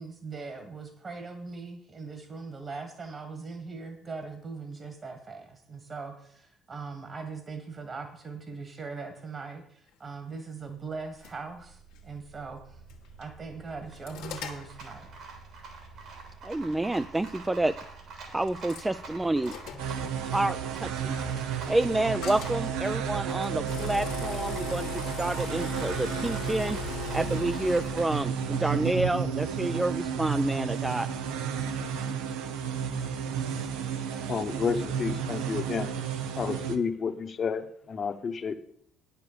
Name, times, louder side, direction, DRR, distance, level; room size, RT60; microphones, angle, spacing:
voice 1, 0.0-12.8 13.2-15.1, right 4 dB, 45° right, 6 dB, 1.9 m, -40 dB
Rattle, 10.8-29.2, right 4 dB, 70° right, 3.2 m, -46 dB
sound 1, 11.2-11.3 11.9-12.0 12.9-13.2 13.6-14.9 16.5-16.6 17.2-17.3 18.5-18.9 19.4-19.9 22.2-22.6 23.4-28.0, left 8 dB, 80° left, 1.5 m, -39 dB
voice 2, 16.4-17.7 18.3-19.5 20.2-21.2 21.7-26.8 27.1-31.1, right 2 dB, 15° right, 10 dB, 0.4 m, -29 dB
sound 2, 19.8-36.8, right 7 dB, 85° right, 0.9 m, -32 dB
voice 3, 34.3-35.9 36.4-38.5, left 5 dB, 45° left, 8 dB, 1.1 m, -30 dB
9.2 x 6.8 x 7.0 m, 0.66 s
supercardioid pair, 75°, 0 cm